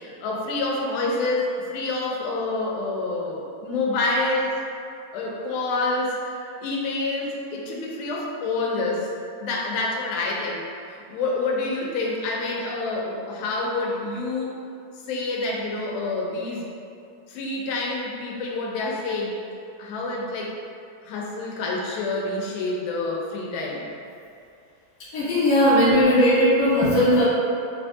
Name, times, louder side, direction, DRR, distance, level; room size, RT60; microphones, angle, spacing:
voice 1, 0.0-4.5 5.1-9.1 9.4-10.7 11.1-14.5 15.1-16.7 17.3-19.4 19.8-20.5 21.0-23.9, left 2 dB, 90° left, -2 dB, 2.4 m, -27 dB
voice 2, 25.1-27.2, equal, 50° left, -12 dB, 1.2 m, -18 dB
5.6 x 2.5 x 2.3 m, 2.5 s
omnidirectional pair, 4.1 m